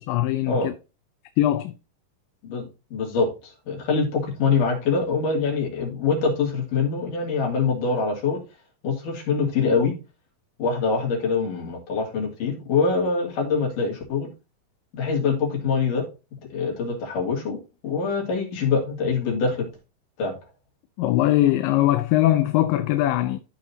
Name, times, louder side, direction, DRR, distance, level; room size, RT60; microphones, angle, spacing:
voice 1, 0.1-0.7 1.4-1.7 21.0-23.4, left 14 dB, 85° left, 2.3 m, -21 dB
voice 2, 2.4-8.4 8.8-9.9 10.6-14.3 14.9-16.0 16.5-19.7 20.2-20.3, left 4 dB, 70° left, 4.1 m, -24 dB
13.0 x 5.1 x 2.8 m
omnidirectional pair, 3.9 m